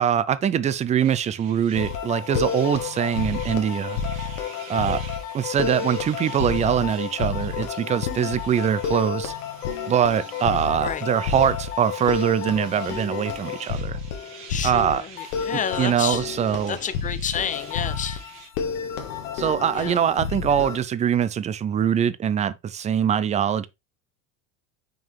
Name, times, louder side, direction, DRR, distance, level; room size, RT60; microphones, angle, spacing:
voice 1, 0.0-4.0 4.7-5.0 5.3-9.3 9.9-14.0 14.6-15.0 15.8-16.8 19.3-23.7, right 9 dB, 20° right, 0.4 m, -23 dB
sound 1, 1.0-18.5, right 7 dB, 70° right, 2.2 m, -47 dB
sound 2, 1.7-20.8, left 6 dB, 90° left, 1.5 m, -30 dB
voice 2, 14.5-16.3 16.7-18.2 19.7-20.0, left 8 dB, 20° left, 0.6 m, -30 dB
6.3 x 4.6 x 3.3 m
supercardioid pair, 125°, 39 cm